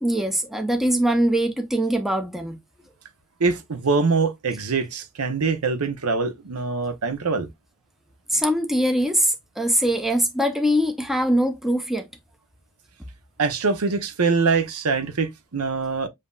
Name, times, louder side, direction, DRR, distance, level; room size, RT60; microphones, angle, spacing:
voice 1, 0.0-2.6 8.3-12.1, equal, ahead, 0.5 m, -22 dB
voice 2, 3.4-7.5 13.4-16.1, right 4 dB, 85° right, 0.8 m, -23 dB
7.2 x 2.7 x 2.3 m
head